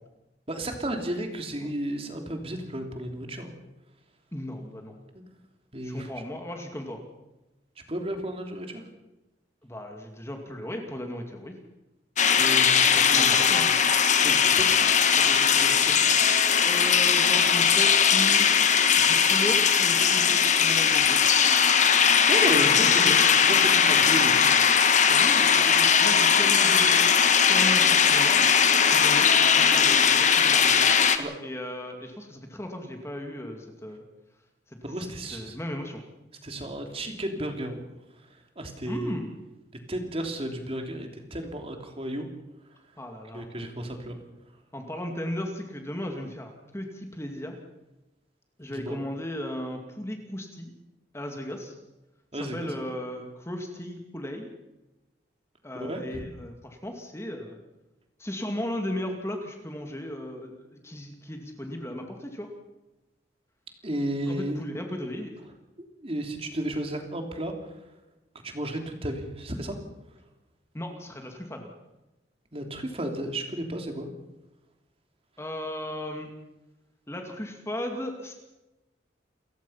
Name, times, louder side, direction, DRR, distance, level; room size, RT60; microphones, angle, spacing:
voice 1, 0.5-3.5 5.1-5.2 5.7-6.1 7.9-8.8 12.4-13.7 14.2-16.1 16.4-16.7 22.3-24.4 31.2-31.4 34.8-35.6 36.4-37.8 38.6-39.1 39.9-42.3 43.3-44.2 48.6-49.0 52.3-52.8 55.7-56.2 63.8-64.6 65.8-67.5 68.4-69.8 72.5-74.1, right 1 dB, 30° right, 4 dB, 3.1 m, -33 dB
voice 2, 4.3-5.0 5.8-7.0 9.6-11.5 12.8-13.7 16.6-18.5 19.0-21.2 22.5-23.2 25.1-27.1 27.5-28.4 28.9-29.3 29.6-30.8 31.4-34.0 34.7-36.0 38.9-39.4 43.0-43.5 44.7-47.6 48.6-50.7 51.1-51.7 52.3-54.5 55.6-57.6 58.2-62.5 64.2-65.4 70.7-71.7 75.4-76.3 77.1-78.3, left 1 dB, 15° left, 3 dB, 2.5 m, -36 dB
sound 1, 12.2-31.2, left 7 dB, 40° left, 1.4 m, -20 dB
29.0 x 15.5 x 5.8 m, 1.0 s
head